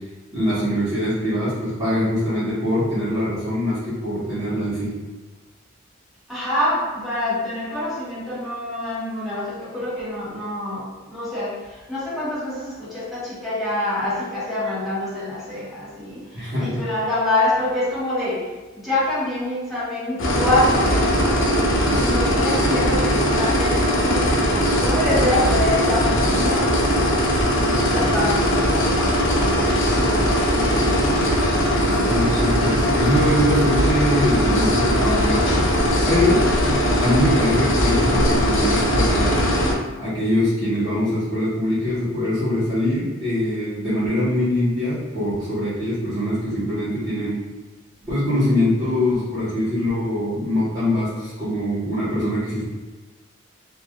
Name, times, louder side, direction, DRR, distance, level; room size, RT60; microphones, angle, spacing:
voice 1, 0.3-4.9 16.3-16.8 32.0-35.6 36.0-36.4 37.0-39.5 40.0-47.4 48.1-52.6, left 1 dB, 20° right, -13 dB, 1.1 m, -23 dB
voice 2, 6.3-21.4 22.0-26.8 27.7-29.0 29.3-31.1 35.0-35.4, left 1 dB, ahead, -11 dB, 1.1 m, -26 dB
sound 1, 20.2-39.7, equal, 65° left, 0.6 m, -19 dB
3.3 x 2.4 x 2.3 m, 1.2 s
head